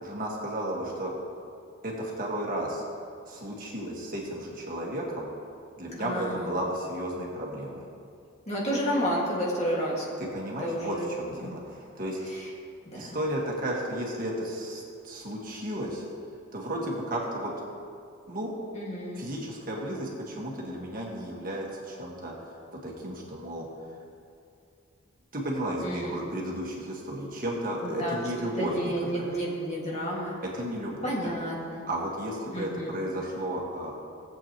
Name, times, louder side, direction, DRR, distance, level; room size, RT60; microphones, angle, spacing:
voice 1, 0.0-1.1 1.8-2.8 3.3-5.3 5.8-7.9 10.2-12.2 12.9-16.0 16.5-17.5 18.3-18.5 19.2-22.3 22.7-23.7 25.3-28.9 29.2-29.3 30.4-31.3 31.9-33.9, right 1 dB, 40° right, -2 dB, 1.6 m, -33 dB
voice 2, 6.0-6.5 8.5-10.0 10.6-11.5 12.3-12.4 12.9-13.2 18.7-19.2 25.8-26.3 27.8-28.2 28.5-30.4 31.0-31.9 32.5-33.0, equal, 30° left, -4 dB, 2.0 m, -31 dB
17.5 x 8.0 x 3.0 m, 2.5 s
head